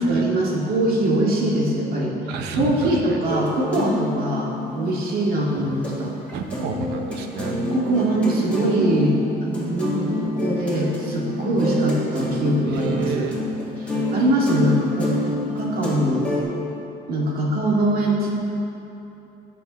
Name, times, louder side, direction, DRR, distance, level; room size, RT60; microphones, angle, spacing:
voice 1, 0.0-2.1 2.6-6.1 7.7-13.3 13.8-16.3 17.1-18.3, right 1 dB, 60° right, -3 dB, 2.2 m, -22 dB
voice 2, 2.3-3.2 6.3-7.6 12.6-13.5 13.9-14.1, right 5 dB, 85° right, 4 dB, 0.9 m, -30 dB
sound 1, 3.2-6.0 6.3-16.4, left 1 dB, 5° left, 2.2 m, -27 dB
16.5 x 7.0 x 3.1 m, 3.0 s
cardioid pair, 110°, 17 cm